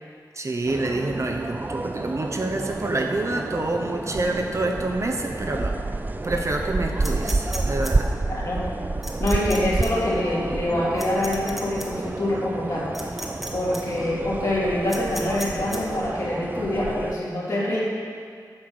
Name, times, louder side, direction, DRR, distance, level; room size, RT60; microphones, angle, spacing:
voice 1, 0.4-5.7 6.2-8.1, right 2 dB, 45° right, 2 dB, 0.9 m, -27 dB
sound 1, 0.7-17.1, right 2 dB, 25° right, 0.3 m, -29 dB
sound 2, 7.0-7.9 9.0-9.6 9.8-9.9 11.0-11.9 12.9-13.5 13.7-13.8 14.9-15.8, equal, ahead, 1.3 m, -34 dB
voice 2, 8.3-8.7 9.2-12.9 13.5-17.8, left 1 dB, 55° left, -7 dB, 3.0 m, -25 dB
8.7 x 7.0 x 6.2 m, 2.1 s
wide cardioid pair, 105°, 7 cm